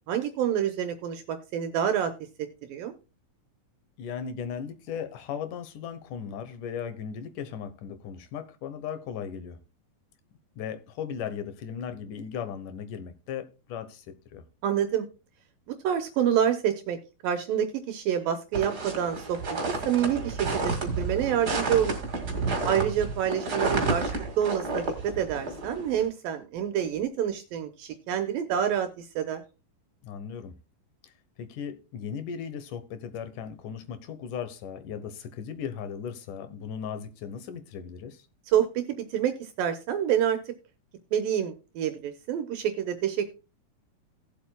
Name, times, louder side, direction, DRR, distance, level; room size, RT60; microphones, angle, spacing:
voice 1, 0.1-2.1 2.7-2.9 14.6-15.1 15.8-17.0 17.2-19.4 19.9-22.0 22.7-29.4 38.5-38.7 39.1-40.4 41.1-43.3, right 9 dB, 75° right, 2.4 m, -27 dB
voice 2, 4.0-9.6 10.6-14.1 14.3-14.4 22.6-22.8 30.0-30.5 31.0-31.1 31.4-38.3, left 7 dB, 70° left, 2.2 m, -37 dB
sound 1, 18.5-26.1, right 3 dB, 35° right, 1.9 m, -30 dB
18.0 x 7.5 x 2.2 m
omnidirectional pair, 4.4 m